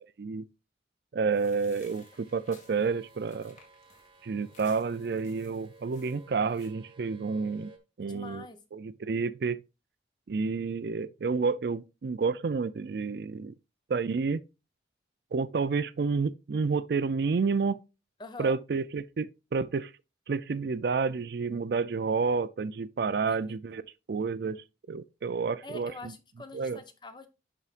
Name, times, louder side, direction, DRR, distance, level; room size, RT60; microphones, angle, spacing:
voice 1, 1.1-3.6 4.2-7.7 8.0-8.5 8.7-9.6 10.3-13.5 13.9-14.4 15.3-17.8 18.4-19.9 20.3-23.8 24.1-25.9 26.5-26.8, right 5 dB, 60° right, 0.4 m, -30 dB
sound 1, 1.3-6.7, left 4 dB, 40° left, 1.9 m, -59 dB
sound 2, 1.9-7.8, right 3 dB, 25° right, 1.1 m, -55 dB
voice 2, 8.0-8.6 18.2-18.6 23.3-23.6 25.6-27.3, left 2 dB, 25° left, 0.7 m, -45 dB
11.0 x 4.6 x 2.5 m
head